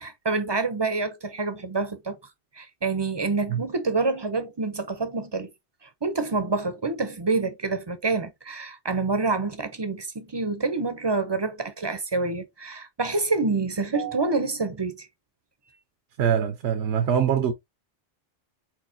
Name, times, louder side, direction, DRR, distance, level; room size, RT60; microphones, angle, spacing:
voice 1, 0.0-2.2 2.6-5.5 6.0-15.1, right 3 dB, 30° right, 0.6 m, -27 dB
voice 2, 16.2-17.5, right 8 dB, 75° right, 1.0 m, -23 dB
4.7 x 4.2 x 2.7 m
omnidirectional pair, 1.2 m